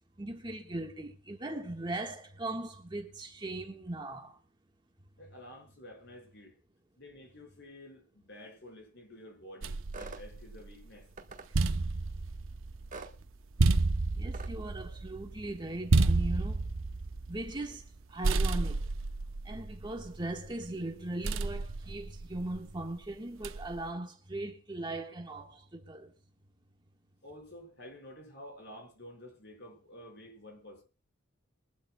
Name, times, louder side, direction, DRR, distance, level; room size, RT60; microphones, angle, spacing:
voice 1, 0.2-4.4 14.1-16.7 17.3-18.9 19.4-26.1, right 2 dB, 20° right, 1.5 m, -39 dB
voice 2, 5.2-6.5 7.0-11.1 27.2-30.8, left 1 dB, 55° left, 4.9 m, -50 dB
sound 1, 9.6-10.9 11.3-18.0 18.2-20.5 21.2-22.7 23.4-23.9, right 3 dB, 75° right, 0.7 m, -31 dB
sound 2, 9.9-10.2 11.2-11.5 12.9-13.1 14.3-14.5, right 3 dB, 40° right, 1.3 m, -44 dB
22.5 x 12.0 x 2.3 m
head